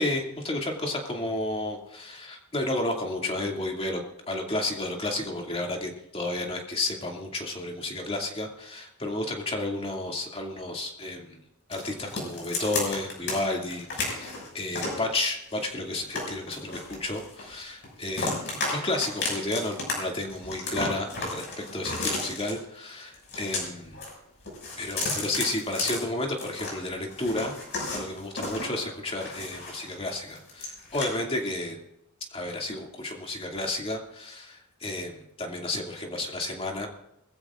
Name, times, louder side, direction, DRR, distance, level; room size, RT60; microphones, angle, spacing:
voice 1, 0.0-4.0 4.3-11.4 11.7-24.0 24.8-27.5 27.9-31.8 32.3-36.9, left 2 dB, 25° left, 0 dB, 2.4 m, -32 dB
sound 1, 11.7-13.4 13.7-15.0 15.5-17.5 17.8-18.7 19.0-19.9 20.2-22.5 23.1-24.1 24.4-26.7 27.1-29.9 30.3-31.0, left 3 dB, 50° left, 6.2 m, -33 dB
21.5 x 15.0 x 2.5 m, 0.82 s
head